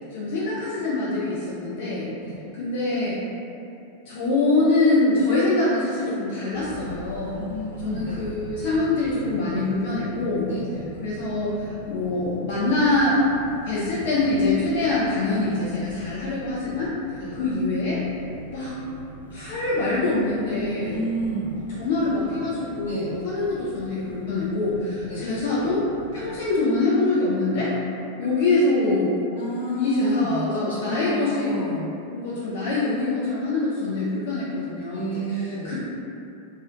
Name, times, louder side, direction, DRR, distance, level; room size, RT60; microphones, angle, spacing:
voice 1, 0.1-2.1 2.6-3.2 4.1-7.5 7.8-10.5 11.0-13.2 13.6-16.9 17.3-18.0 18.5-18.7 19.3-21.0 21.8-25.8 26.1-27.7 28.2-29.2 29.7-31.6 32.1-35.7, left 2 dB, 55° left, -7 dB, 0.4 m, -24 dB
sound 1, 6.5-26.4, equal, 90° right, 0.4 m, -41 dB
voice 2, 7.3-8.2 10.4-10.7 17.2-17.4 20.8-21.6 22.8-23.1 25.0-25.3 29.3-32.0 34.9-35.7, right 1 dB, 85° left, -12 dB, 1.1 m, -31 dB
2.5 x 2.1 x 3.6 m, 2.7 s
figure-of-eight pair, 90°, 0 cm